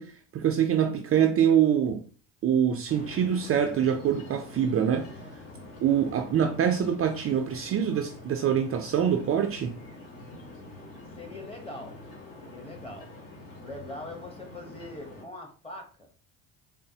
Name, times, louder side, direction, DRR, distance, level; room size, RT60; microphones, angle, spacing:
voice 1, 0.0-2.0 2.4-5.1 5.8-9.8, right 9 dB, 40° right, 0.4 m, -25 dB
sound 1, 2.9-15.2, left 2 dB, 60° left, 1.5 m, -45 dB
voice 2, 11.2-12.0 12.4-13.1 13.6-16.1, left 1 dB, 15° left, 0.9 m, -42 dB
3.9 x 2.0 x 2.7 m
supercardioid pair, 90°, 37 cm